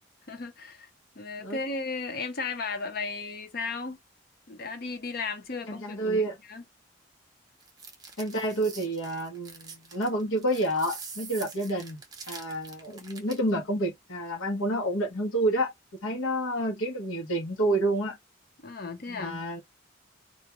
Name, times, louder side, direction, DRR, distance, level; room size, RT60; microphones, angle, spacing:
voice 1, 0.3-0.9 1.2-4.0 4.5-6.6 18.6-19.4, left 4 dB, 50° left, 0.7 m, -35 dB
voice 2, 5.7-6.4 8.2-12.0 12.3-15.7 16.0-18.2 19.1-19.6, right 1 dB, 85° left, 0.9 m, -29 dB
sound 1, 7.6-13.5, right 5 dB, 20° right, 0.6 m, -45 dB
2.4 x 2.2 x 2.9 m
head